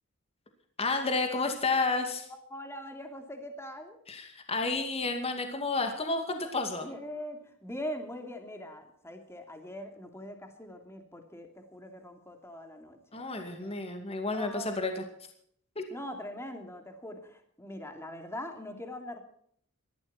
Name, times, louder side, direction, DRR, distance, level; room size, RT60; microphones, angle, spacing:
voice 1, 0.8-2.3 4.1-6.9 13.1-15.0 15.8-15.9, left 3 dB, 30° left, 5 dB, 2.4 m, -31 dB
voice 2, 2.5-4.0 6.8-13.7 14.3-14.8 15.9-19.2, left 1 dB, 10° left, 5 dB, 2.9 m, -42 dB
20.0 x 14.0 x 4.4 m, 0.67 s
head